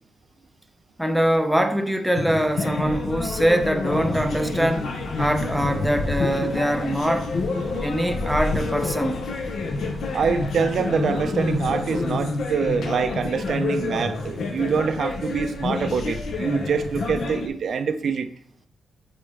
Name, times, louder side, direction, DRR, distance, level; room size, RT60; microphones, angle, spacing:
voice 1, 1.0-4.9 5.2-7.3 7.8-9.2, right 1 dB, 5° right, 0.6 m, -23 dB
sound 1, 2.2-17.5, left 3 dB, 65° left, 0.9 m, -28 dB
sound 2, 3.9-12.1, left 1 dB, 45° left, 1.4 m, -37 dB
voice 2, 10.1-18.3, right 6 dB, 60° right, 0.5 m, -25 dB
8.6 x 4.1 x 3.4 m
wide cardioid pair, 135°, 0 cm